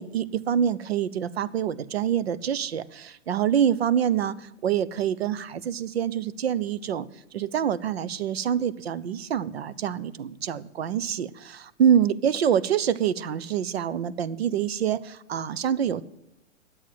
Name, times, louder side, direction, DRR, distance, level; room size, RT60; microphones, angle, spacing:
voice 1, 0.0-7.1 7.3-16.0, right 9 dB, 55° right, 18 dB, 0.7 m, -26 dB
11.0 x 7.8 x 9.2 m, 0.89 s
figure-of-eight pair, 110°, 37 cm